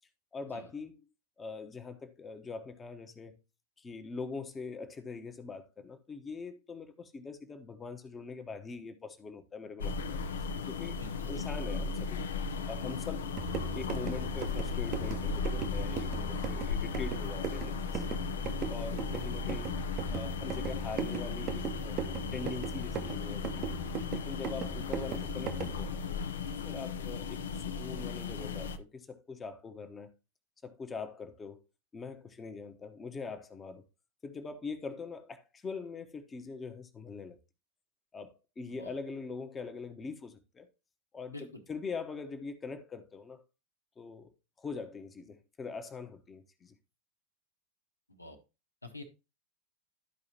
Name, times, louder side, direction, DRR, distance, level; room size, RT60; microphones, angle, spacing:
voice 1, 0.3-1.0 1.4-3.4 3.8-10.2 10.7-11.0 11.3-12.2 12.7-13.4 13.7-18.2 18.7-19.7 20.1-22.0 22.3-23.6 24.1-26.0 26.5-30.1 30.6-31.6 31.9-33.8 34.2-37.4 38.1-40.7 41.1-43.4 44.0-44.3 44.6-46.7, left 4 dB, 15° left, 1.0 m, -43 dB
sound 1, 9.8-28.8, left 5 dB, 65° left, 0.7 m, -36 dB
voice 2, 11.0-11.8 38.7-39.0 41.3-41.6 48.1-48.4 48.8-49.0, left 2 dB, 85° left, 1.3 m, -48 dB
sound 2, 13.2-25.8, right 8 dB, 35° right, 0.8 m, -39 dB
12.5 x 4.8 x 2.8 m
figure-of-eight pair, 90°, 0 cm